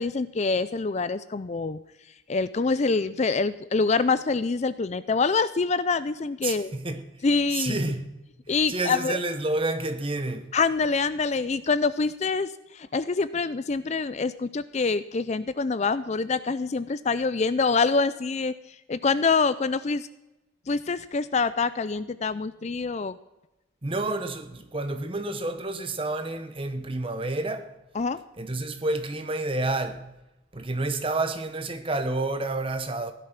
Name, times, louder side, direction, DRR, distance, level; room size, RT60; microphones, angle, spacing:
voice 1, 0.0-1.8 2.3-6.7 7.2-7.8 8.5-9.2 10.5-18.5 18.9-20.1 20.7-23.1 27.9-28.2, left 4 dB, 35° left, 0.4 m, -25 dB
voice 2, 6.4-7.2 7.5-8.2 8.7-10.6 23.8-27.7 28.4-30.1 30.5-33.1, right 2 dB, 25° right, 1.1 m, -29 dB
16.0 x 11.0 x 5.9 m
head